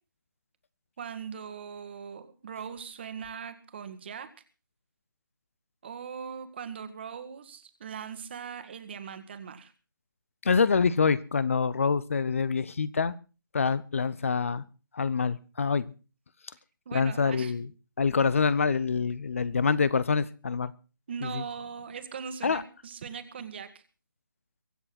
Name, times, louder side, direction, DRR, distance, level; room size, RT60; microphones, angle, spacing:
voice 1, 1.0-4.3 5.8-9.7 16.9-17.5 21.1-23.8, right 7 dB, 30° right, 9 dB, 1.8 m, -40 dB
voice 2, 10.4-13.1 13.5-14.6 14.9-15.9 16.9-17.7 18.0-20.7 21.2-21.4 22.4-22.6, left 5 dB, 40° left, 18 dB, 0.8 m, -26 dB
23.5 x 7.8 x 6.0 m, 0.35 s
figure-of-eight pair, 150°, 11 cm